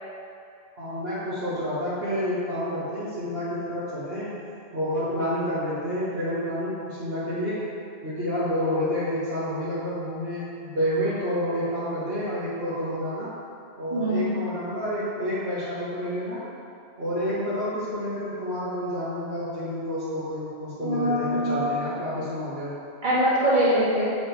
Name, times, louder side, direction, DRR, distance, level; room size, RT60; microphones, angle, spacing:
voice 1, 0.8-4.3 4.7-7.6 8.0-13.3 13.8-16.4 17.0-22.7, equal, 70° right, -11 dB, 1.9 m, -29 dB
voice 2, 13.9-14.3 20.8-21.7 23.0-24.1, equal, 50° right, -10 dB, 2.3 m, -23 dB
8.0 x 7.3 x 3.4 m, 2.5 s
omnidirectional pair, 1.1 m